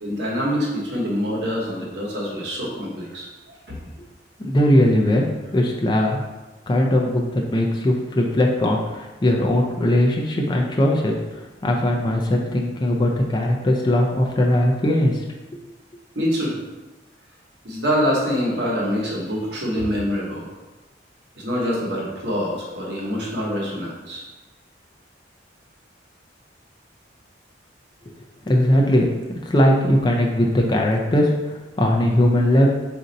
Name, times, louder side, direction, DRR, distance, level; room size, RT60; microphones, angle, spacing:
voice 1, 0.0-3.8 16.1-16.6 17.6-20.5 21.4-24.2, equal, 60° right, -4 dB, 1.0 m, -25 dB
voice 2, 4.4-5.3 5.5-6.2 6.7-15.2 28.5-32.7, left 1 dB, 25° left, 0 dB, 0.4 m, -19 dB
4.2 x 2.6 x 3.9 m, 1.2 s
head